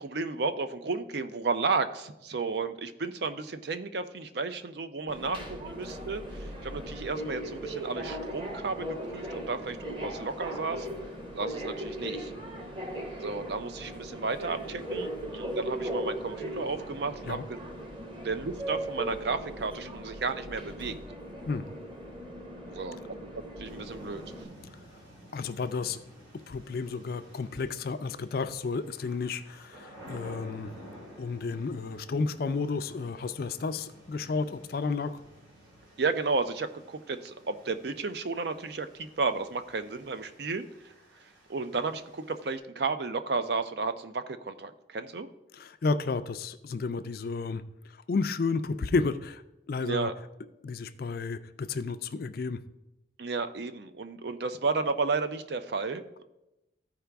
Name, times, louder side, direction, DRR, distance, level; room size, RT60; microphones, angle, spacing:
voice 1, 0.0-5.4 5.6-10.9 11.3-12.3 13.2-17.6 18.2-20.9 22.7-23.0 23.6-24.2 36.0-40.7 41.5-45.3 49.8-50.1 53.2-56.2, right 4 dB, 55° right, 10 dB, 0.5 m, -33 dB
Subway metro underground, 5.1-24.4, right 1 dB, 25° right, 1.1 m, -38 dB
sound 1, 23.7-42.6, right 1 dB, 85° right, 2.7 m, -52 dB
voice 2, 25.3-26.0 26.5-30.7 31.2-35.2 45.5-47.6 47.9-49.4 49.7-50.1 50.6-52.6, left 4 dB, 50° left, 11 dB, 0.4 m, -32 dB
14.0 x 4.8 x 3.4 m, 0.94 s
head